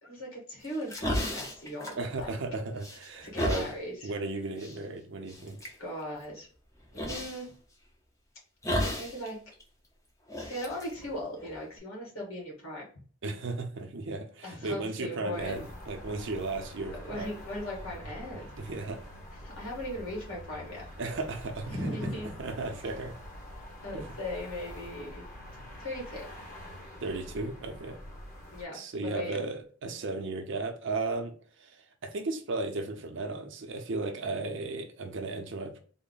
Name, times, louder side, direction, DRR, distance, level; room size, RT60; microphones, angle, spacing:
voice 1, 0.0-2.3 3.2-4.1 5.8-6.5 6.9-7.5 9.0-9.4 10.4-12.9 14.4-15.6 16.9-18.5 19.4-20.8 21.7-22.3 23.8-25.3 25.8-26.3 28.5-29.5, left 1 dB, 70° left, 1.8 m, -38 dB
sound 1, 0.6-2.5 2.8-3.7 4.6-4.8 5.3-5.7 7.0-7.4 8.6-9.3 9.5-9.6 10.3-11.8, left 1 dB, 15° left, 0.5 m, -33 dB
voice 2, 2.0-3.7 4.0-5.6 13.2-17.3 18.6-19.0 21.0-21.9 22.4-23.2 23.9-24.0 27.0-28.0 28.7-35.8, right 3 dB, 55° right, 0.5 m, -35 dB
sound 2, 15.3-28.6, equal, 40° left, 1.0 m, -46 dB
3.6 x 2.1 x 3.8 m
head